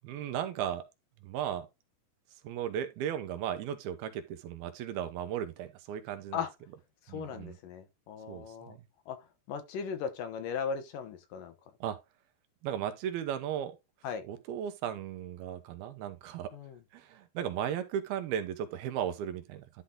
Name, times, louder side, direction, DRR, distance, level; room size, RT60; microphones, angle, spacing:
voice 1, 0.0-0.8 1.2-1.7 2.4-6.4 7.1-7.6 8.3-8.8 11.8-12.0 12.6-13.7 14.2-16.5 16.9-19.8, right 10 dB, 80° right, 2.9 m, -36 dB
voice 2, 7.1-8.8 9.1-9.2 9.5-11.5 14.0-14.2 16.5-16.8, left 6 dB, 70° left, 2.6 m, -37 dB
11.5 x 4.1 x 3.7 m
omnidirectional pair, 4.4 m